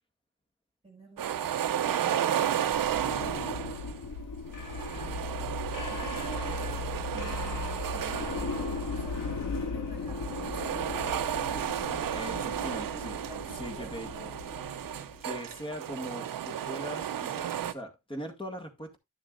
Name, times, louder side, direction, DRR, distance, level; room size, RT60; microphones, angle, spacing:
voice 1, 0.8-3.8 5.9-11.4 13.1-14.6, right 2 dB, 15° right, 2.2 m, -50 dB
sound 1, 1.2-4.0 4.6-9.4 10.0-17.7, right 10 dB, 80° right, 0.8 m, -33 dB
sound 2, 2.6-15.4, left 4 dB, 65° left, 1.8 m, -37 dB
voice 2, 12.1-13.2 13.5-14.1 15.2-19.0, equal, 15° left, 2.0 m, -40 dB
11.5 x 7.2 x 2.5 m
wide cardioid pair, 130°, 33 cm